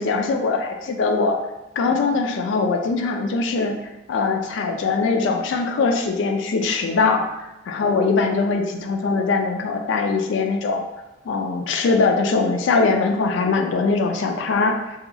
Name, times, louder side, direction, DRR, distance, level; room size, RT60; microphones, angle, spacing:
voice 1, 0.0-1.4 1.8-3.8 4.1-10.8 11.3-14.8, left 4 dB, 75° left, 4 dB, 0.3 m, -21 dB
2.8 x 2.3 x 2.4 m, 0.96 s
head